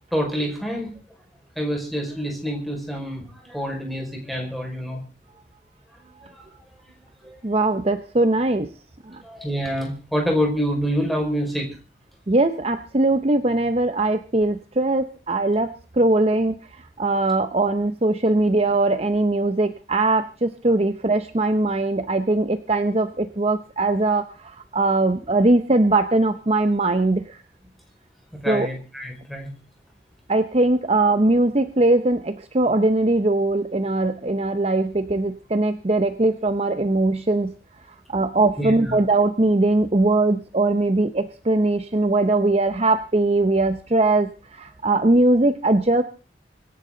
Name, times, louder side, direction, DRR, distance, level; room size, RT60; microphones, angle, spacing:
voice 1, 0.1-0.9 1.6-5.0 6.0-6.1 7.2-7.4 9.2-11.7 28.4-29.5 38.6-38.9, equal, ahead, 0 dB, 5.3 m, -27 dB
voice 2, 7.4-8.7 9.1-9.2 12.3-27.4 28.5-28.7 30.3-37.5 38.1-46.0, right 2 dB, 35° right, 9 dB, 0.8 m, -21 dB
25.0 x 11.0 x 3.9 m, 0.35 s
head